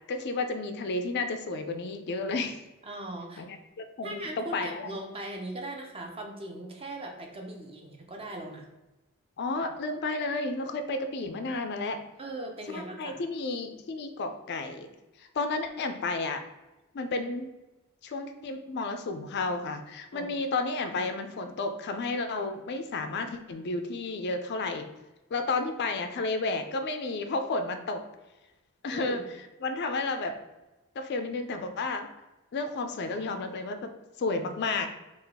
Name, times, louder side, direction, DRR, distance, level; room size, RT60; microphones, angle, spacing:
voice 1, 0.1-2.6 3.4-4.9 9.4-12.0 12.7-14.9 15.2-16.4 16.9-17.5 18.0-24.9 25.3-28.0 28.8-30.3 31.0-32.1 32.5-33.9 34.2-34.9, left 3 dB, 50° left, 7 dB, 0.4 m, -32 dB
voice 2, 2.9-3.5 4.0-8.7 12.2-13.2 20.1-20.3 28.9-29.3, right 1 dB, 25° right, 2 dB, 0.6 m, -39 dB
3.8 x 2.4 x 3.4 m, 1.0 s
head